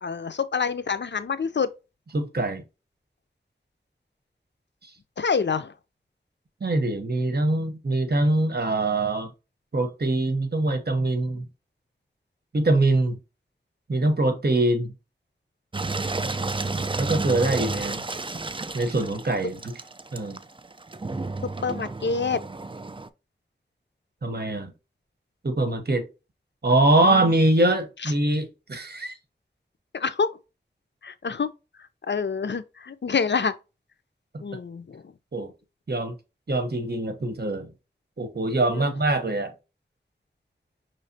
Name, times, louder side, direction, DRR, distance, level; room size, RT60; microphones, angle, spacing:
voice 1, 0.0-1.7 5.2-5.7 21.6-22.4 27.0-27.3 28.0-28.1 29.9-30.3 31.0-31.5 32.1-33.5 34.4-35.0 38.7-38.9, left 5 dB, 75° left, 0.5 m, -27 dB
voice 2, 2.1-2.6 6.6-9.3 9.7-11.5 12.5-13.2 13.9-14.9 17.0-18.0 18.7-19.7 20.1-20.4 24.2-24.7 25.4-26.1 26.6-29.2 35.3-35.5 35.9-36.1 36.5-37.7 38.2-39.5, right 2 dB, 60° right, 1.0 m, -23 dB
Engine, 15.7-23.1, right 3 dB, 25° right, 0.4 m, -31 dB
5.6 x 3.2 x 2.7 m
wide cardioid pair, 50°, 18 cm